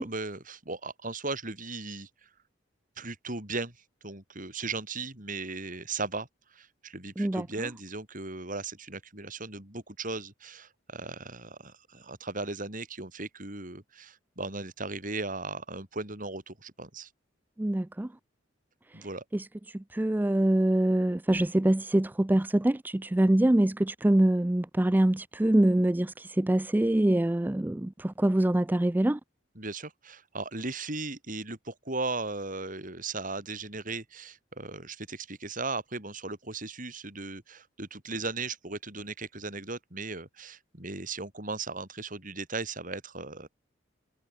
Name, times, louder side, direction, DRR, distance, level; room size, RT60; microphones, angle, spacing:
voice 1, 0.0-2.3 3.0-3.8 4.0-17.1 18.9-19.2 29.6-43.5, right 3 dB, 45° right, 5.8 m, -37 dB
voice 2, 7.2-7.7 17.6-18.2 18.9-19.1 19.3-29.2, right 1 dB, 10° right, 0.4 m, -25 dB
head